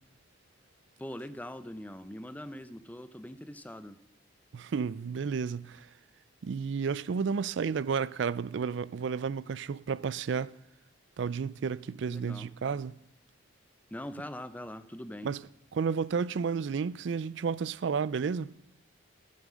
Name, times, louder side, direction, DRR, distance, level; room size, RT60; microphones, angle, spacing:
voice 1, 1.0-4.0 12.1-12.5 13.9-15.3, left 1 dB, 10° left, 0.5 m, -42 dB
voice 2, 4.5-5.9 6.4-10.5 11.2-13.0 15.2-15.4 15.7-18.5, right 6 dB, 65° right, 0.4 m, -32 dB
12.5 x 9.3 x 6.2 m
head